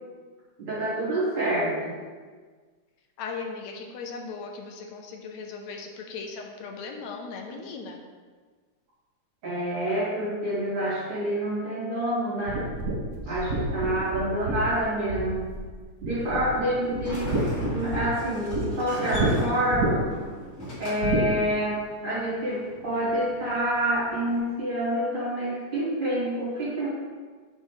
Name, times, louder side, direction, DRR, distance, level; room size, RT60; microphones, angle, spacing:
voice 1, 0.6-2.0 9.4-12.6 13.3-15.5 16.0-17.3 17.7-20.1 20.8-26.9, right 1 dB, 50° right, -9 dB, 3.6 m, -27 dB
voice 2, 3.2-8.0 13.3-13.4, left 4 dB, 80° left, 2 dB, 1.9 m, -38 dB
sound 1, 12.5-15.7 16.0-16.6 16.9-18.6 19.1-19.3 19.7-20.2 21.0-21.3, right 2 dB, 70° right, 0.7 m, -29 dB
Sliding door, 16.8-24.4, equal, 25° left, 2.0 m, -39 dB
9.9 x 6.1 x 3.2 m, 1.5 s
omnidirectional pair, 3.3 m